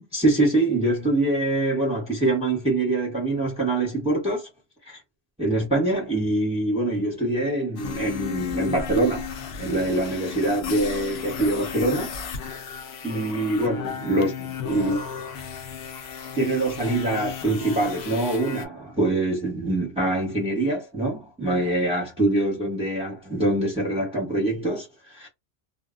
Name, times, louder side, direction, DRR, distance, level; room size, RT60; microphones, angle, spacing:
voice 1, 0.0-4.5 4.8-5.0 5.4-9.3 9.6-12.2 13.0-15.1 16.3-25.3, right 2 dB, 5° right, 0.7 m, -24 dB
sound 1, 7.8-18.7, left 7 dB, 70° left, 0.8 m, -34 dB
2.1 x 2.0 x 3.5 m
omnidirectional pair, 1.1 m